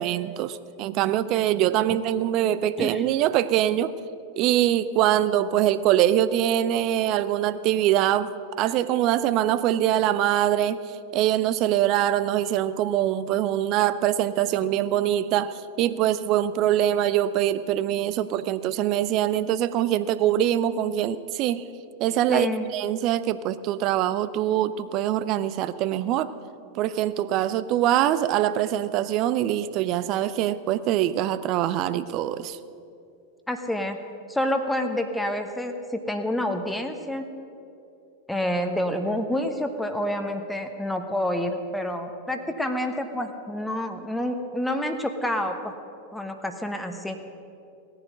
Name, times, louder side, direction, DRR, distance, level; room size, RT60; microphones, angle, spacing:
voice 1, 0.0-3.9 4.4-10.8 11.1-21.7 22.0-22.5 22.7-26.3 26.7-32.6, right 12 dB, 40° right, 15 dB, 0.6 m, -23 dB
voice 2, 22.3-22.7 33.5-34.0 34.3-35.7 36.1-37.2 38.3-45.7 46.1-47.2, left 1 dB, 5° left, 5 dB, 1.1 m, -28 dB
18.0 x 9.9 x 6.5 m, 2.6 s
figure-of-eight pair, 90°, 0 cm